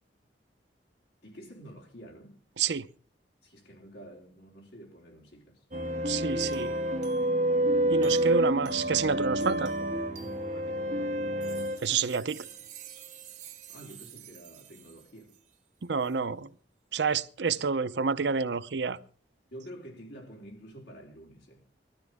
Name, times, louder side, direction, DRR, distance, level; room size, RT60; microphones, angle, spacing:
voice 1, 1.2-2.4 3.4-5.6 10.2-10.9 13.7-15.4 19.5-21.6, equal, 70° left, 4.0 m, -49 dB
sound 1, 5.7-14.6, right 1 dB, 45° right, 1.2 m, -30 dB
voice 2, 6.1-6.7 7.9-9.7 11.8-12.4 15.8-16.5 16.9-19.0, right 5 dB, 80° right, 0.6 m, -28 dB
20.5 x 13.0 x 3.6 m
head